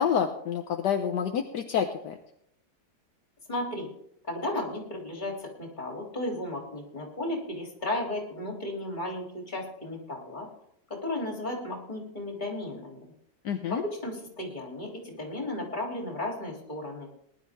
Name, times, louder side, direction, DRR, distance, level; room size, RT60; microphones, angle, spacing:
voice 1, 0.0-2.2 13.4-13.8, left 8 dB, 70° left, 5 dB, 1.4 m, -28 dB
voice 2, 3.5-3.9 4.3-10.5 10.9-13.0 13.7-17.1, left 1 dB, 25° left, 0 dB, 3.4 m, -34 dB
19.5 x 11.5 x 3.6 m, 0.72 s
omnidirectional pair, 2.0 m